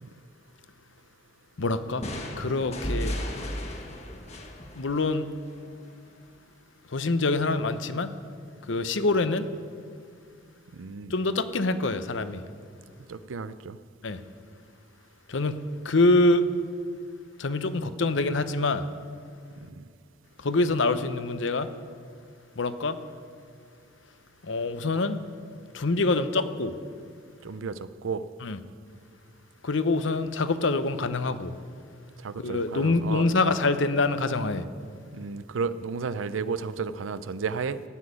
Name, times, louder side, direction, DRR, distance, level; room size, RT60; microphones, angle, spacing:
voice 1, 1.6-2.1 2.4-3.1 4.7-5.3 6.9-8.1 8.7-9.5 11.1-12.4 14.0-14.2 15.3-16.4 17.4-18.8 20.4-21.7 22.6-23.0 24.4-25.2 25.7-26.8 28.4-28.6 29.6-31.5 32.4-34.6, left 2 dB, 75° left, 11 dB, 0.8 m, -25 dB
sound 1, 2.0-5.7, equal, 35° left, 1.4 m, -34 dB
voice 2, 2.4-2.7 10.7-11.1 13.1-13.8 19.6-19.8 27.4-28.2 32.2-33.3 35.1-37.8, right 5 dB, 90° right, 14 dB, 0.5 m, -33 dB
15.5 x 6.2 x 9.6 m, 2.2 s
head